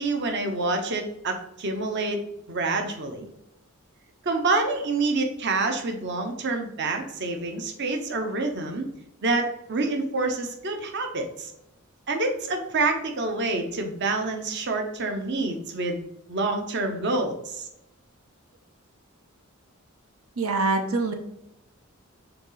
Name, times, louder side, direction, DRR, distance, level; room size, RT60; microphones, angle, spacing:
voice 1, 0.0-3.3 4.2-8.8 9.2-11.5 12.1-16.0 16.3-17.7, right 3 dB, 55° right, 5 dB, 0.9 m, -27 dB
voice 2, 20.4-21.1, right 3 dB, 85° right, 5 dB, 0.8 m, -24 dB
6.9 x 4.0 x 3.9 m, 0.84 s
head